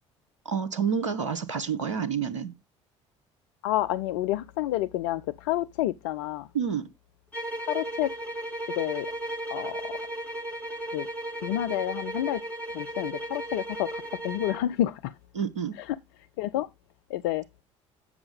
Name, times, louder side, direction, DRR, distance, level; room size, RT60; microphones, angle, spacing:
voice 1, 0.4-2.5 6.5-6.9 15.3-15.8, right 7 dB, 75° right, 0.8 m, -28 dB
voice 2, 3.6-6.5 7.7-8.1 8.8-9.1 9.5-10.0 10.9-11.1 11.4-12.4 12.7-15.1 15.7-16.0 16.4-16.7 17.1-17.4, left 14 dB, 60° left, 0.4 m, -29 dB
sound 1, 7.3-14.7, right 1 dB, 10° left, 3.7 m, -35 dB
7.8 x 7.1 x 3.5 m
figure-of-eight pair, 55°, 16 cm